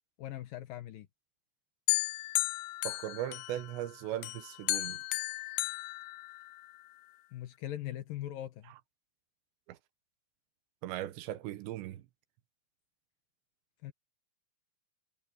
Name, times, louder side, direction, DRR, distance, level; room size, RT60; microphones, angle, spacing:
voice 1, 0.2-1.1 7.3-8.7 13.8-13.9, left 13 dB, 70° left, 2.4 m, -40 dB
sound 1, 1.9-3.8 4.2-6.8, left 20 dB, 85° left, 2.7 m, -34 dB
voice 2, 2.8-5.0 9.7-9.8 10.8-12.1, right 13 dB, 90° right, 3.4 m, -38 dB
omnidirectional pair, 4.9 m